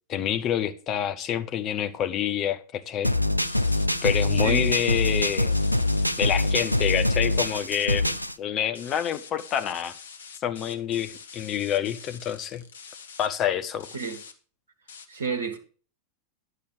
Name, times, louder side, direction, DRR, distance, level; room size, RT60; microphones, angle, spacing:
voice 1, 0.1-3.1 4.0-5.6 6.2-9.9 10.4-12.6 13.2-13.9, left 10 dB, 35° left, 0.9 m, -27 dB
sound 1, 3.0-8.3, left 1 dB, 90° left, 0.4 m, -24 dB
sound 2, 3.4-8.2 8.7-13.3 13.8-14.3 14.9-15.1, left 6 dB, 65° left, 1.0 m, -45 dB
voice 2, 15.1-15.6, right 5 dB, 65° right, 1.2 m, -30 dB
10.5 x 6.6 x 5.0 m
figure-of-eight pair, 90°, 0 cm